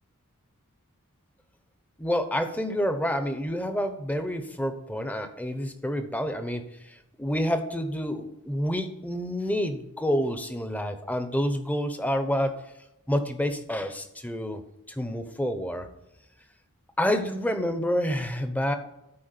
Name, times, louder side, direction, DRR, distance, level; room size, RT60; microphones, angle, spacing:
voice 1, 2.0-12.6 13.1-14.6 14.9-15.9 17.0-18.8, equal, 5° left, 8 dB, 0.9 m, -28 dB
13.0 x 5.0 x 6.7 m, 0.88 s
head